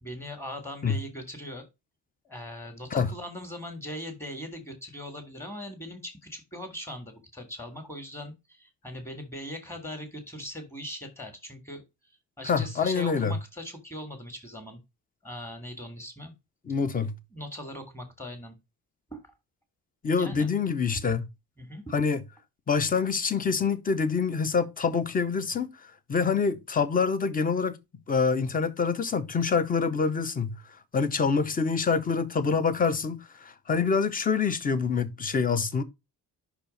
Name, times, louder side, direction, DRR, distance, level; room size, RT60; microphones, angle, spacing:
voice 1, 0.0-1.7 2.3-11.8 12.4-14.8 15.2-16.3 17.3-18.6 19.1-19.2 20.2-20.5 21.6-21.8, equal, 5° left, 1.8 m, -40 dB
voice 2, 12.4-13.4 16.7-17.2 20.0-21.3 21.9-22.2 22.7-27.8 28.1-30.6 30.9-35.8, left 5 dB, 25° left, 0.7 m, -26 dB
5.8 x 4.5 x 5.2 m
cardioid pair, 150°, 36 cm